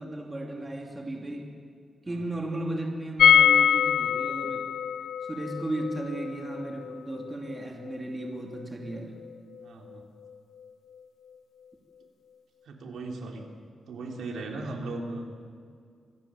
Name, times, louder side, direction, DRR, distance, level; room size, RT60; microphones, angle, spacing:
voice 1, 0.0-1.5 2.1-4.7 5.3-9.1, right 1 dB, 20° right, 1 dB, 2.7 m, -35 dB
sound 1, 3.2-9.0 9.2-9.3 9.6-9.7, left 8 dB, 85° left, 0.9 m, -24 dB
voice 2, 9.6-10.0 12.7-13.4 13.9-15.2, right 2 dB, 85° right, 1 dB, 3.5 m, -37 dB
25.0 x 15.0 x 8.8 m, 2.1 s
wide cardioid pair, 130°, 0 cm